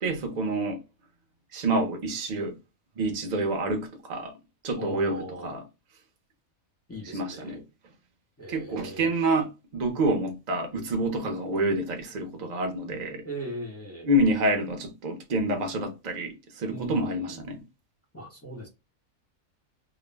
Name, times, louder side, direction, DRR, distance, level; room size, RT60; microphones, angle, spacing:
voice 1, 0.0-0.8 1.5-2.6 3.0-4.3 4.6-5.6 7.1-7.6 8.5-13.2 14.0-17.6, right 1 dB, 50° right, 0.5 m, -28 dB
voice 2, 4.7-5.5 6.9-7.6 8.4-9.2 13.2-14.1 16.7-17.5 18.1-18.7, right 1 dB, 15° left, 0.5 m, -39 dB
2.4 x 2.0 x 3.2 m
omnidirectional pair, 1.5 m